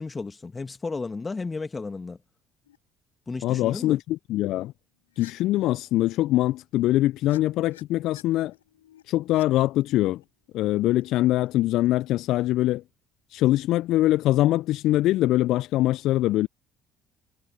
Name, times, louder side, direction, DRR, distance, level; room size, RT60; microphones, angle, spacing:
voice 1, 0.0-2.2 3.3-4.0, left 4 dB, 25° left, 2.9 m, -33 dB
sound 1, 2.6-2.8 3.4-3.7 5.1-5.3 6.6-11.9, left 12 dB, 80° left, 7.8 m, -56 dB
voice 2, 3.4-4.7 5.2-8.5 9.1-10.2 10.5-12.8 13.3-16.5, left 15 dB, 60° left, 0.8 m, -23 dB
figure-of-eight pair, 55°, 0 cm